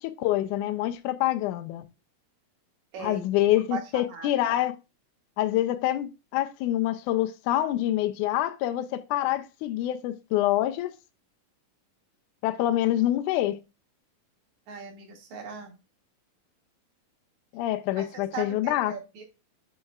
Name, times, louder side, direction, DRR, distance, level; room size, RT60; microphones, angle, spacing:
voice 1, 0.0-1.8 3.0-4.7 5.4-10.9 12.4-13.6 17.5-18.9, left 14 dB, 80° left, 1.9 m, -26 dB
voice 2, 2.9-3.2 3.7-4.3 14.7-15.7 18.0-19.2, right 6 dB, 60° right, 2.4 m, -39 dB
7.8 x 5.4 x 2.4 m
omnidirectional pair, 4.1 m